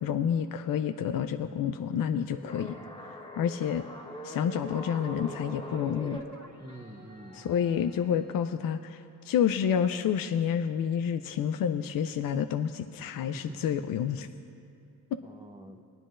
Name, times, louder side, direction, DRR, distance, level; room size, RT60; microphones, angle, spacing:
voice 1, 0.0-2.7 3.4-3.8 4.2-6.2 7.3-14.3 15.1-15.2, left 8 dB, 55° left, 9 dB, 0.5 m, -29 dB
sound 1, 2.3-6.2, left 1 dB, 10° left, 1.0 m, -42 dB
sound 2, 2.5-8.5, right 1 dB, 40° right, 1.6 m, -52 dB
voice 2, 6.6-7.4 13.3-13.9 15.2-15.8, right 1 dB, 10° right, 3 dB, 0.8 m, -45 dB
22.0 x 9.0 x 2.5 m, 2.5 s
cardioid pair, 65°, 41 cm